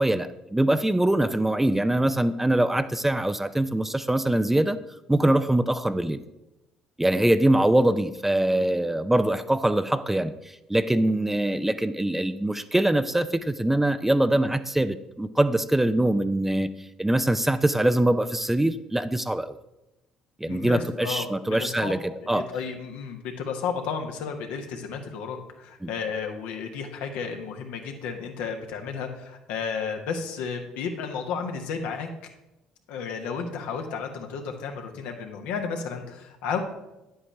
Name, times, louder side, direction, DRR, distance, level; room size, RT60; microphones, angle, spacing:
voice 1, 0.0-4.8 5.1-6.2 7.0-16.7 17.0-19.6 20.4-22.0 22.3-22.4 25.8-25.9, right 1 dB, 10° right, 12 dB, 0.5 m, -23 dB
voice 2, 20.5-21.9 22.3-32.1 32.9-36.6, left 6 dB, 70° left, 3 dB, 1.2 m, -32 dB
9.8 x 7.9 x 3.3 m, 0.95 s
hypercardioid pair, 55°, 3 cm